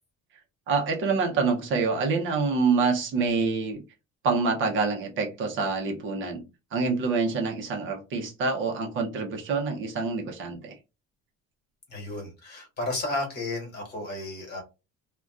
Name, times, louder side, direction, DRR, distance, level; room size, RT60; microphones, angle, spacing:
voice 1, 0.7-3.8 4.2-6.4 6.7-10.7, right 4 dB, 40° right, 0.6 m, -26 dB
voice 2, 11.9-14.6, left 2 dB, 35° left, 1.3 m, -33 dB
2.4 x 2.2 x 3.5 m
cardioid pair, 175°, 29 cm